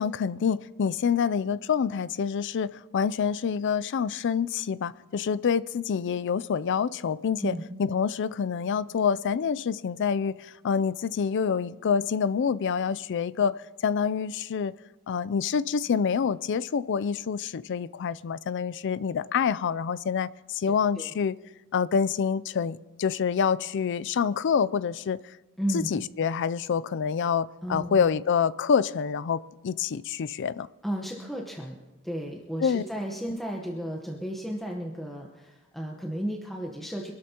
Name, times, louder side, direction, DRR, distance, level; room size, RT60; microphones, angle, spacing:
voice 1, 0.0-7.5 7.8-13.5 13.8-14.7 15.1-21.3 21.7-25.2 25.7-30.7 32.6-32.8, left 6 dB, 55° left, 18 dB, 0.4 m, -27 dB
voice 2, 25.6-25.9 27.6-28.0 30.8-31.8 32.0-37.1, equal, ahead, -1 dB, 1.0 m, -33 dB
26.0 x 12.5 x 2.9 m, 1.1 s
head